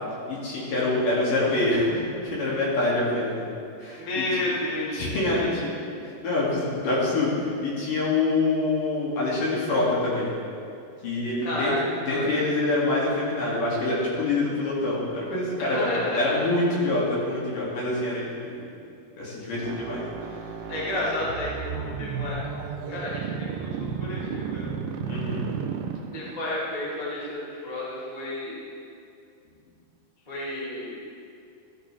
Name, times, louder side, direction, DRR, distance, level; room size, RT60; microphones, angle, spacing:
voice 1, 0.3-3.4 3.8-4.0 4.9-5.7 6.2-10.3 11.0-11.7 12.1-15.9 16.1-18.5 19.2-20.0 20.9-21.1 25.1-25.4, left 2 dB, 55° left, -6 dB, 3.6 m, -25 dB
voice 2, 4.0-5.0 5.3-5.7 11.4-11.8 12.0-12.3 15.6-16.4 20.7-22.4 22.9-24.6 26.1-28.6 30.3-31.0, left 1 dB, 15° left, -7 dB, 1.5 m, -31 dB
sound 1, 19.5-26.5, right 6 dB, 80° right, 2.1 m, -33 dB
14.5 x 13.5 x 3.3 m, 2.5 s
omnidirectional pair, 4.8 m